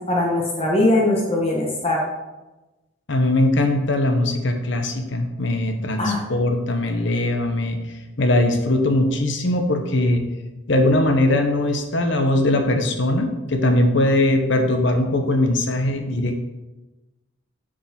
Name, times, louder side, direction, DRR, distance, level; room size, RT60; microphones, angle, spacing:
voice 1, 0.0-2.0 6.0-6.2, left 1 dB, 30° left, -2 dB, 1.1 m, -21 dB
voice 2, 3.1-10.2 10.7-16.4, left 1 dB, 60° left, 5 dB, 0.9 m, -20 dB
6.9 x 5.2 x 5.8 m, 1.1 s
head